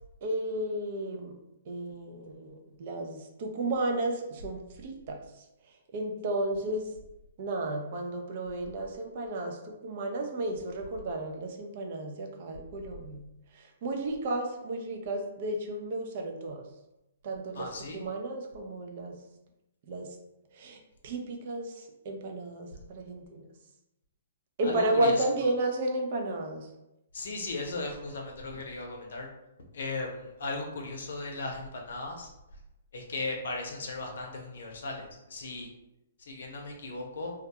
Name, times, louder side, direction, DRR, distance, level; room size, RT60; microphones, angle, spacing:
voice 1, 0.2-1.3 1.7-5.2 5.9-6.9 7.4-13.2 13.5-16.6 17.2-19.2 19.9-20.2 20.5-23.5 24.6-26.7, right 1 dB, 50° right, 3 dB, 0.5 m, -33 dB
voice 2, 17.5-18.0 24.6-25.1 27.1-29.3 29.7-32.3 32.9-35.7 36.2-37.3, left 3 dB, 70° left, 1 dB, 0.6 m, -37 dB
2.3 x 2.2 x 2.8 m, 0.90 s
hypercardioid pair, 135°, 0 cm